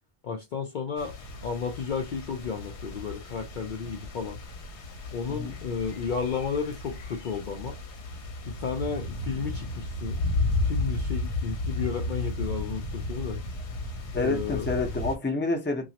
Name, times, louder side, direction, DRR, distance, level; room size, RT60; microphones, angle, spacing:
voice 1, 0.2-1.1 1.4-4.4 5.1-7.8 8.4-10.2 10.6-13.4 14.1-14.7, left 6 dB, 60° left, 0.5 m, -33 dB
sound 1, 1.0-15.2, left 2 dB, 75° left, 1.0 m, -33 dB
voice 2, 14.1-15.9, left 2 dB, 15° left, 0.5 m, -28 dB
3.0 x 2.3 x 2.8 m
omnidirectional pair, 1.1 m